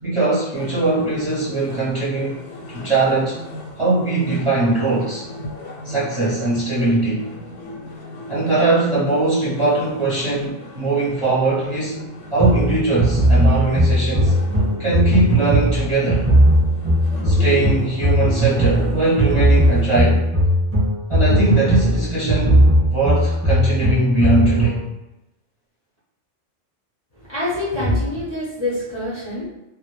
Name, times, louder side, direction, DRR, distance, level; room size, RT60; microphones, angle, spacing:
voice 1, 0.0-2.4 2.7-3.4 3.8-5.2 5.8-7.3 8.3-12.0 12.3-14.3 14.8-16.3 17.2-20.2 21.1-24.8, right 2 dB, 35° right, -10 dB, 0.5 m, -20 dB
sound 1, 0.5-20.1, left 1 dB, 85° left, 0.9 m, -36 dB
sound 2, 12.4-24.8, right 1 dB, 10° right, 0.9 m, -17 dB
voice 2, 27.1-29.5, left 1 dB, 35° left, -9 dB, 0.4 m, -25 dB
2.1 x 2.0 x 2.9 m, 0.97 s
omnidirectional pair, 1.2 m